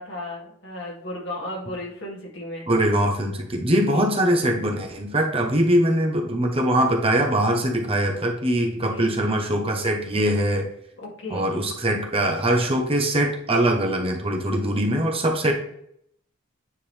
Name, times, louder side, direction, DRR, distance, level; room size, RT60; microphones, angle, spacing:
voice 1, 0.0-2.7 3.9-4.1 8.8-9.1 11.0-11.6 15.4-15.5, left 1 dB, 60° left, -3 dB, 2.5 m, -35 dB
voice 2, 2.7-10.7 11.3-15.5, right 1 dB, 30° right, 2 dB, 1.0 m, -22 dB
9.4 x 3.8 x 3.4 m, 0.70 s
head